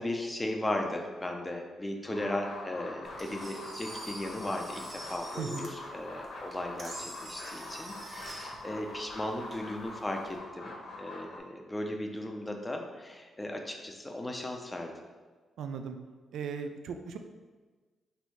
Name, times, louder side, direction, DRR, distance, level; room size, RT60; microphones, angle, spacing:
voice 1, 0.0-14.9, left 1 dB, 15° left, 2 dB, 0.5 m, -36 dB
sound 1, 2.0-11.4, left 2 dB, 65° left, 1.0 m, -44 dB
Engine, 3.0-10.4, right 1 dB, 35° right, 0.9 m, -47 dB
voice 2, 15.6-16.0 16.3-17.2, right 6 dB, 85° right, 6 dB, 0.4 m, -37 dB
4.3 x 2.7 x 4.5 m, 1.3 s
wide cardioid pair, 155°, 0 cm